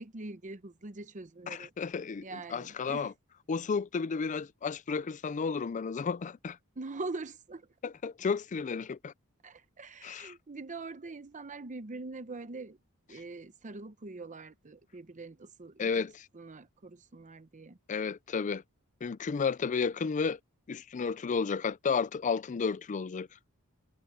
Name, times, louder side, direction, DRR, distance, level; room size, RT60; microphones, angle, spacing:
voice 1, 0.0-1.7 2.2-3.1 6.8-7.7 9.4-12.8 13.1-15.9 16.3-17.8, right 3 dB, 35° right, 0.8 m, -43 dB
voice 2, 1.5-3.1 3.5-6.6 7.8-9.1 10.0-10.3 15.8-16.3 17.9-18.6 19.0-20.4 20.7-23.3, left 5 dB, 35° left, 0.4 m, -32 dB
head